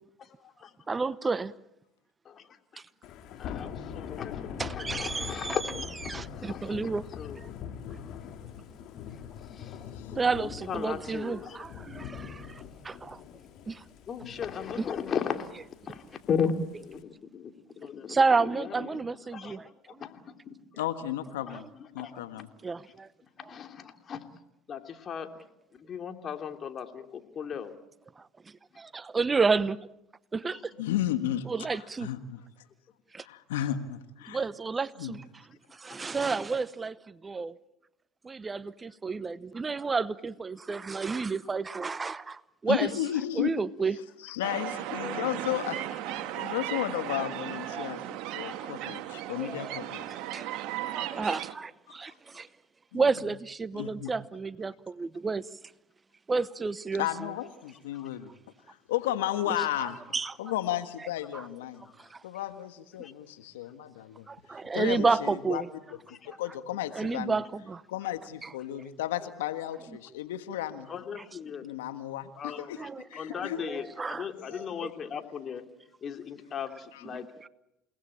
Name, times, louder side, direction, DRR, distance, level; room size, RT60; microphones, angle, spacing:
voice 1, 0.9-1.5 4.6-5.6 6.1-7.0 10.1-13.2 13.7-13.8 14.8-14.9 18.1-19.7 22.6-23.1 28.2-28.3 28.8-29.8 30.3-30.7 31.5-32.1 33.1-33.2 34.3-35.2 35.7-37.6 38.2-42.9 43.4-44.0 47.7-47.9 48.4-48.7 49.4-49.8 50.1-50.5 50.9-52.5 52.9-55.5 56.3-57.1 59.8-60.3 61.3-61.5 62.0-62.2 64.3-65.7 66.3-66.4 66.9-67.8 68.4-68.5 72.8-73.0 73.3-73.4 73.7-74.9, right 4 dB, 25° right, 0.9 m, -31 dB
Thunder / Rain, 3.0-17.0, left 8 dB, 60° left, 2.8 m, -43 dB
voice 2, 3.4-5.6 6.0-6.9 7.2-7.4 9.1-9.2 9.5-9.8 10.4-11.6 14.1-15.5 15.9-19.0 19.3-20.5 22.0-22.4 23.4-24.2 24.7-25.3 25.7-27.7 30.5-30.6 45.0-45.3 57.9-58.1 63.0-63.1 70.9-71.7 72.4-72.9 73.1-75.6 76.0-77.2, left 7 dB, 40° left, 3.0 m, -36 dB
voice 3, 20.7-21.7 21.9-22.5 30.8-32.4 33.2-34.4 35.0-35.1 42.7-43.6 44.2-50.0 51.9-52.0 52.9-53.0 53.7-54.1 57.0-58.3 58.7-60.0 60.4-61.9 62.2-65.6 66.2-67.4 67.9-70.9 71.6-72.8 73.1-73.6 74.4-74.7 76.9-77.0, left 12 dB, 80° left, 1.5 m, -34 dB
sound 1, 44.4-51.5, right 13 dB, 65° right, 1.8 m, -36 dB
29.0 x 19.0 x 8.7 m
hypercardioid pair, 70°, 0 cm